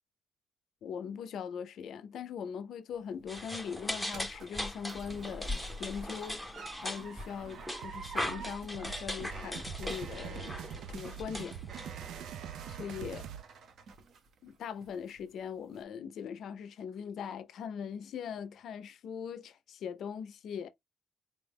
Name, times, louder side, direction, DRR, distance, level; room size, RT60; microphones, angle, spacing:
voice 1, 0.8-6.4 6.8-10.6 10.9-11.6 12.7-13.3 14.4-20.7, left 7 dB, 60° left, 0.5 m, -41 dB
sound 1, 2.9-14.5 14.8-15.3 15.7-15.8, right 5 dB, 50° right, 0.7 m, -49 dB
sound 2, 3.3-12.3, left 1 dB, ahead, 0.6 m, -39 dB
sound 3, 7.8-13.4, right 10 dB, 85° right, 0.3 m, -45 dB
4.2 x 2.1 x 3.4 m
cardioid pair, 170°, 0 cm